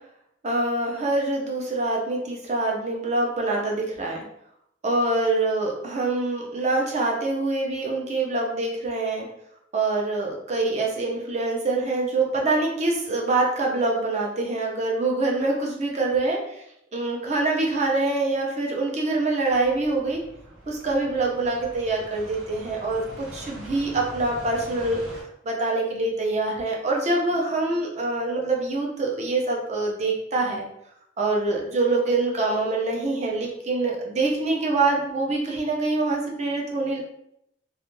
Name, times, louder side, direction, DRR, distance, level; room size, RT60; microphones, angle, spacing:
voice 1, 0.4-4.2 4.8-9.3 9.7-16.6 16.9-20.2 20.7-25.0 25.4-30.6 31.2-37.0, right 2 dB, 35° right, -1 dB, 0.5 m, -25 dB
sound 1, 19.5-25.2, right 1 dB, 70° right, 0.7 m, -43 dB
2.3 x 2.1 x 3.0 m, 0.77 s
head